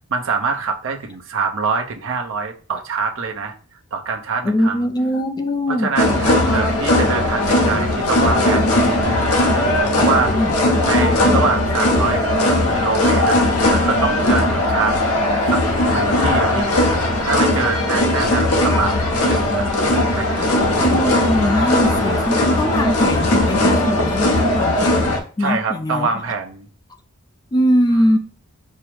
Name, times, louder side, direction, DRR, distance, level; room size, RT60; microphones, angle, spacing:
voice 1, 0.1-3.5 3.9-4.9 5.7-10.3 10.8-12.3 12.7-13.4 13.7-15.0 15.5-15.6 15.9-16.8 17.2-19.7 20.1-20.6 25.4-26.7, right 4 dB, 60° right, 0.7 m, -24 dB
voice 2, 4.4-5.9 6.4-6.6 10.4-10.5 20.8-26.1 27.5-28.2, equal, 20° left, 0.3 m, -21 dB
sound 1, 6.0-25.2, left 1 dB, 80° left, 0.8 m, -18 dB
4.7 x 2.0 x 4.6 m
head